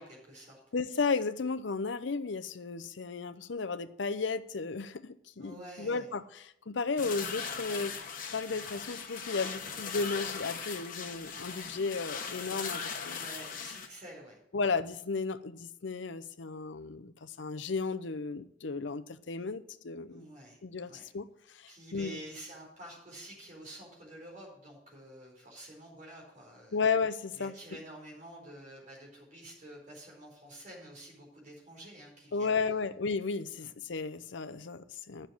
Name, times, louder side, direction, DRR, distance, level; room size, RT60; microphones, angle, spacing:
voice 1, 0.0-0.6 5.4-6.1 13.0-14.4 20.1-21.0 21.7-26.8 27.3-32.8 33.6-33.7, right 1 dB, 40° right, 4.5 m, -49 dB
voice 2, 0.7-8.0 8.3-13.2 14.5-20.3 20.6-22.2 26.7-27.5 32.3-35.3, left 4 dB, 65° left, 0.6 m, -34 dB
sound 1, 7.0-13.9, left 6 dB, 45° left, 1.3 m, -39 dB
9.3 x 6.6 x 7.6 m
head